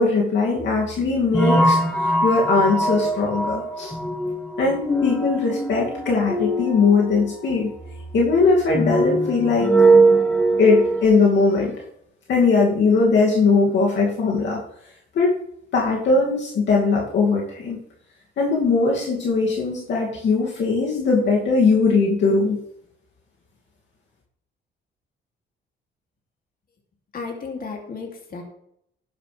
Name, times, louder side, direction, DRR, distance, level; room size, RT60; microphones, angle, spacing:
voice 1, 0.0-3.9 4.6-7.7 8.1-9.7 10.6-11.8 12.3-14.6 15.1-15.4 15.7-17.8 18.4-22.6, left 4 dB, 65° left, -2 dB, 2.6 m, -20 dB
sound 1, 0.6-11.0, right 2 dB, 5° left, 1.8 m, -21 dB
voice 2, 27.1-28.4, left 4 dB, 45° left, 1 dB, 2.9 m, -33 dB
12.0 x 10.0 x 3.5 m, 0.74 s
cardioid pair, 90°, 20 cm